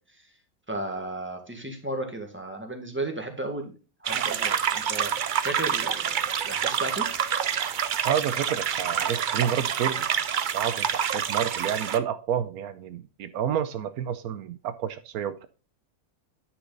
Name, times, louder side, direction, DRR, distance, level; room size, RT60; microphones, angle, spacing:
voice 1, 0.7-5.1 5.4-6.1 6.5-7.1, right 2 dB, 10° right, 3 dB, 1.7 m, -34 dB
sound 1, 4.0-12.0, right 8 dB, 60° right, 0.5 m, -27 dB
voice 2, 8.0-10.1 10.5-15.5, right 9 dB, 85° right, 12 dB, 1.2 m, -29 dB
9.7 x 6.2 x 3.9 m, 0.34 s
omnidirectional pair, 1.5 m